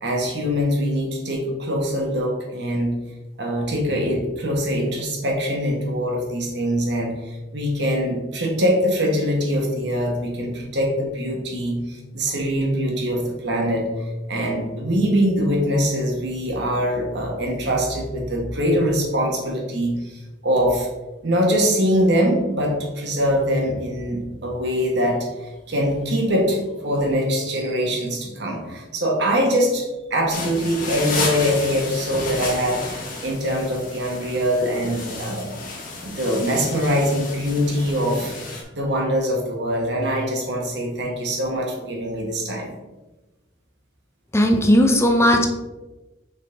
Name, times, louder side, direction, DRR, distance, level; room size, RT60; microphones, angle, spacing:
voice 1, 0.0-3.0 3.4-20.9 21.2-32.8 33.2-35.5 36.0-42.7, equal, 60° right, -1 dB, 1.6 m, -23 dB
sound 1, 30.3-38.6, left 3 dB, 45° left, 1.2 m, -32 dB
voice 2, 44.3-45.5, equal, 15° left, 4 dB, 0.6 m, -16 dB
6.2 x 4.0 x 3.9 m, 1.1 s
head